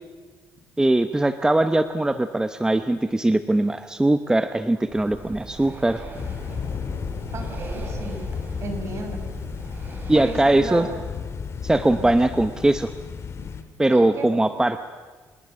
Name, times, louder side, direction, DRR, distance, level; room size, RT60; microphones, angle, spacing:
voice 1, 0.8-6.0 10.1-10.9 11.6-12.9 13.8-14.8, right 1 dB, 10° right, 10 dB, 0.9 m, -21 dB
Breathing, 4.8-11.0, right 3 dB, 35° right, 4.5 m, -39 dB
sound 1, 6.1-13.6, left 6 dB, 50° left, 2.2 m, -33 dB
voice 2, 7.3-8.2 8.6-9.2 10.1-10.9 11.9-12.1 13.9-14.3, right 2 dB, 50° right, 5 dB, 5.7 m, -34 dB
26.5 x 20.0 x 7.5 m, 1.5 s
cardioid pair, 95°, 6 cm